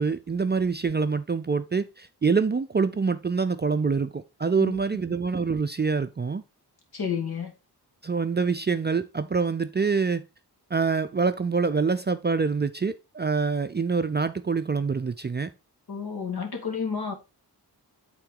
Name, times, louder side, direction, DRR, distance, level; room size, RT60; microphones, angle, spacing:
voice 1, 0.0-6.4 8.0-10.2 10.7-15.5, right 5 dB, 25° right, 0.4 m, -25 dB
voice 2, 6.9-7.5 15.9-17.1, left 6 dB, 65° left, 2.1 m, -30 dB
8.8 x 3.8 x 3.7 m
wide cardioid pair, 100°, 40 cm